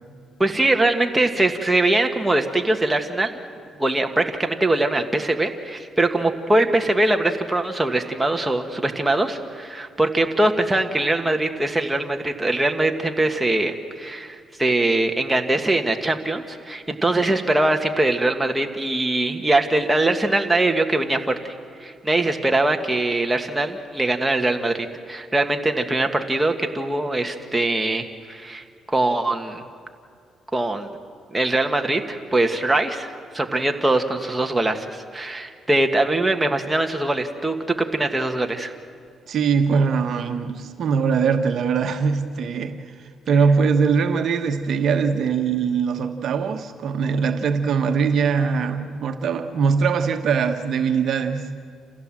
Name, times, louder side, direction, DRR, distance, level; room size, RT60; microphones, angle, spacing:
voice 1, 0.4-3.3 3.8-21.5 21.8-29.6 30.5-30.9 31.3-33.1 33.3-37.6 37.9-38.7, right 2 dB, 10° right, 4 dB, 1.7 m, -22 dB
voice 2, 39.3-42.9 43.3-51.5, right 5 dB, 65° right, 6 dB, 1.2 m, -21 dB
28.5 x 16.0 x 7.7 m, 2.3 s
cardioid pair, 90°, 0 cm